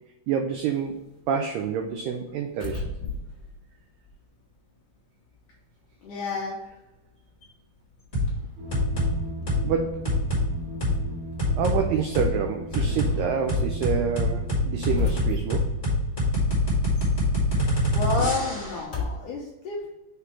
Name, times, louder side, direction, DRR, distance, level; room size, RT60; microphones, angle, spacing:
voice 1, 0.3-1.0 1.3-2.9 9.6-10.2 11.6-15.7, right 7 dB, 85° right, 4 dB, 2.0 m, -27 dB
sound 1, 0.6-5.0 5.2-19.2, left 3 dB, 35° left, 2.2 m, -38 dB
voice 2, 6.0-6.6 17.5-17.6 17.9-19.9, left 3 dB, 80° left, -2 dB, 1.8 m, -30 dB
sound 2, 8.1-8.3 8.7-9.1 9.5-9.7 10.0-10.4 10.8-10.9 11.4-11.8 12.1-12.3 12.7-13.1 13.5-18.8, left 1 dB, 20° left, 1.1 m, -24 dB
sound 3, 8.6-15.7, equal, 70° right, 2.9 m, -38 dB
7.0 x 3.3 x 4.4 m, 1.0 s
omnidirectional pair, 4.6 m